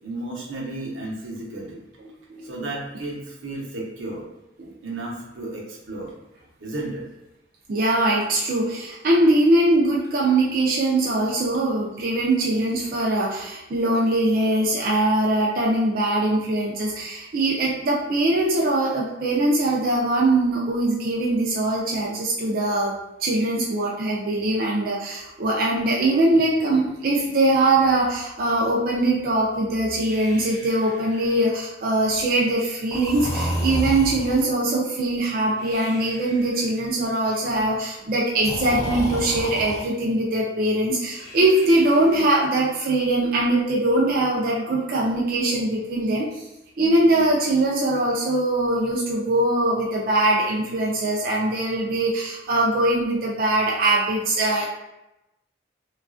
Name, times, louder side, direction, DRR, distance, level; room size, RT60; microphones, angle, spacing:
voice 1, 0.0-1.8 2.4-4.2 4.8-6.1 6.6-7.1 12.5-12.6 12.9-13.0 32.0-32.2 37.5-37.6 38.0-38.1 54.4-54.5, right 2 dB, 90° right, -3 dB, 0.8 m, -33 dB
voice 2, 7.7-22.9 23.2-46.4 46.8-54.6, right 2 dB, 50° right, -3 dB, 0.4 m, -22 dB
Breathing, 29.9-31.5 32.9-34.6 35.6-36.6 38.4-39.8 41.1-42.3, equal, 20° left, 0.7 m, -31 dB
3.1 x 2.3 x 2.4 m, 0.94 s
head